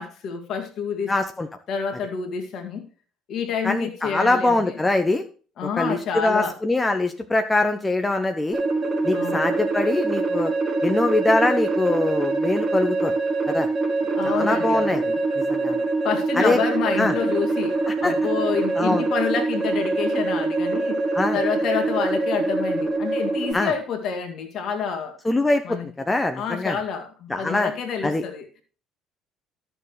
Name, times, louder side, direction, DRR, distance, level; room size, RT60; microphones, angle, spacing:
voice 1, 0.0-1.1 1.7-2.8 3.3-4.7 5.6-6.6 9.1-9.5 14.1-15.0 16.0-21.0 21.3-25.2 25.6-25.9 26.4-28.5, left 6 dB, 50° left, 2.1 m, -28 dB
voice 2, 1.1-1.5 3.6-5.2 5.8-8.6 9.0-10.5 10.8-13.1 13.5-13.7 14.2-15.8 16.4-16.6 17.0-17.1 17.9-18.1 18.8-19.0 21.1-21.4 23.5-23.7 25.2-26.8 27.3-27.7 28.0-28.2, left 2 dB, 15° left, 0.9 m, -23 dB
sound 1, 8.5-23.5, right 3 dB, 35° right, 2.5 m, -24 dB
13.0 x 6.7 x 3.2 m
figure-of-eight pair, 55°, 0 cm